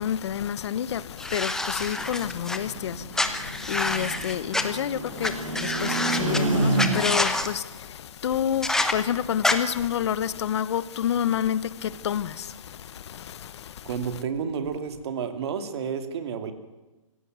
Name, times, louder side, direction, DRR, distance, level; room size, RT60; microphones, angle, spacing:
voice 1, 0.0-13.9, left 9 dB, 55° left, 1.2 m, -29 dB
sound 1, 1.2-2.6 3.1-4.6 5.2-5.3 5.5-6.4 6.8-7.5 8.6-8.9 9.4-9.6, left 2 dB, 5° left, 1.0 m, -26 dB
sound 2, 1.9-7.4, right 2 dB, 70° right, 7.5 m, -29 dB
voice 2, 13.8-16.5, right 6 dB, 50° right, 2.7 m, -31 dB
23.5 x 16.5 x 9.4 m
hypercardioid pair, 150°, 17 cm